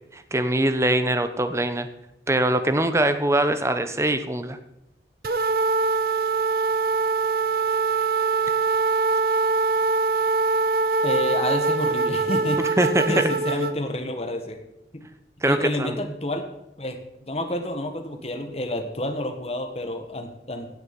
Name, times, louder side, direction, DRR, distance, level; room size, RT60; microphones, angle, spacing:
voice 1, 0.1-1.9 2.3-4.6 12.8-13.3 15.4-16.0, right 1 dB, 15° right, 10 dB, 0.9 m, -22 dB
sound 1, 5.2-13.7, right 4 dB, 55° right, 0.9 m, -23 dB
voice 2, 11.0-12.6 13.1-14.6 14.9-15.0 15.5-16.4 16.8-17.0 17.3-20.7, left 1 dB, 35° left, 5 dB, 1.6 m, -29 dB
16.5 x 7.1 x 6.1 m, 0.88 s
head